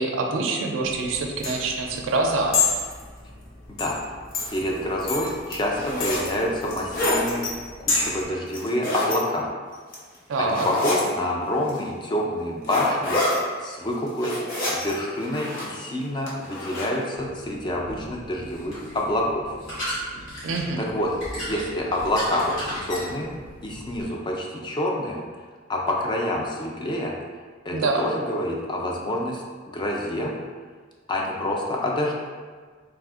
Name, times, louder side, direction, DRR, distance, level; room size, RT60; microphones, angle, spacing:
voice 1, 0.0-2.6 10.3-10.7 20.4-20.8 27.7-28.1, right 3 dB, 70° right, 2 dB, 0.4 m, -25 dB
sound 1, 0.9-8.2, left 4 dB, 85° left, 0.6 m, -29 dB
sound 2, 4.4-4.6 5.1-6.3 6.7-7.5 8.5-9.2 9.7-10.2 10.5-11.1 11.7-11.8 12.6-13.4 13.9-14.9 15.2-15.8 16.3-16.9, left 1 dB, 45° left, 0.8 m, -27 dB
voice 2, 4.5-7.4 7.8-9.5 10.4-13.2 13.6-14.4 14.7-19.6 20.8-23.3 23.6-25.2 25.7-27.1 27.7-30.3 31.1-32.1, left 1 dB, 25° left, -1 dB, 0.3 m, -27 dB
sound 3, 17.1-24.1, equal, 65° left, 1.4 m, -36 dB
3.4 x 2.4 x 2.3 m, 1.5 s
head